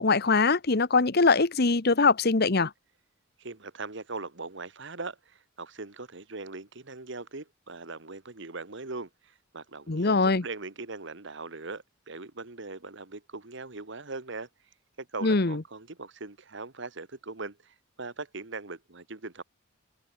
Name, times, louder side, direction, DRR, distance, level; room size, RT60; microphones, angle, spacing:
voice 1, 0.0-2.7 9.9-10.4 15.2-15.6, left 3 dB, 50° left, 1.0 m, -22 dB
voice 2, 3.4-5.2 5.6-9.1 9.5-14.5 15.0-19.4, right 3 dB, 60° right, 1.5 m, -40 dB
head